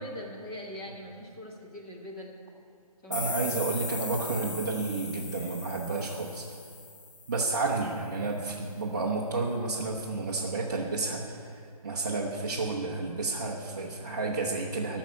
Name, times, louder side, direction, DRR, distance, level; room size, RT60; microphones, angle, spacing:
voice 1, 0.0-2.4 3.0-3.5, equal, 10° left, -4 dB, 0.7 m, -42 dB
sound 1, 3.1-7.8, left 3 dB, 30° left, 1.0 m, -39 dB
voice 2, 3.1-6.5 7.3-15.0, right 3 dB, 30° right, -4 dB, 0.8 m, -31 dB
13.0 x 6.3 x 8.1 m, 2.3 s
hypercardioid pair, 170°, 20 cm